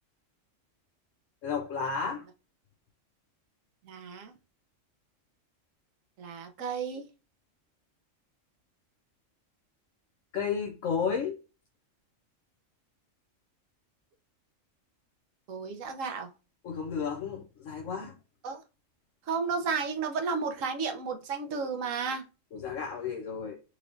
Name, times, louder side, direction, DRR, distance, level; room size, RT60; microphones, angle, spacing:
voice 1, 1.4-2.2 10.3-11.4 16.6-18.2 22.5-23.6, left 6 dB, 75° left, 1.1 m, -32 dB
voice 2, 3.8-4.3 6.2-7.1 15.5-16.3 18.4-18.6 19.3-22.2, right 5 dB, 85° right, 1.2 m, -33 dB
4.5 x 3.1 x 2.5 m
omnidirectional pair, 1.3 m